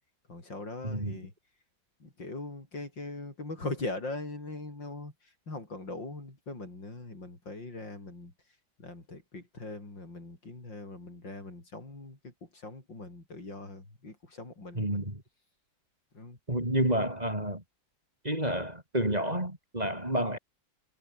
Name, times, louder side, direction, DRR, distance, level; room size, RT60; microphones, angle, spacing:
voice 1, 0.3-1.3 2.0-5.1 5.5-8.3 8.8-15.1 16.1-16.4, left 2 dB, 70° left, 7.3 m, -41 dB
voice 2, 0.8-1.2 14.7-15.2 16.5-17.6 18.2-20.4, right 1 dB, 20° right, 4.8 m, -30 dB
omnidirectional pair, 2.0 m